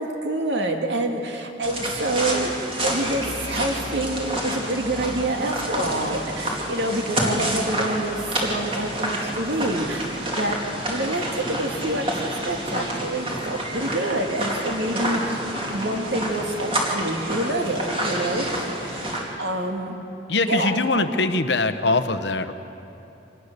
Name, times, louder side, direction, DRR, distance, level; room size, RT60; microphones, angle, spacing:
voice 1, 0.0-10.6 10.9-18.5 18.8-19.0 19.4-20.0 20.5-21.1, right 1 dB, 65° right, 3 dB, 2.1 m, -27 dB
sound 1, 1.6-19.2, right 1 dB, 30° right, 2.6 m, -28 dB
voice 2, 20.3-22.5, left 3 dB, 65° left, 10 dB, 0.9 m, -22 dB
24.5 x 19.0 x 6.7 m, 2.9 s
head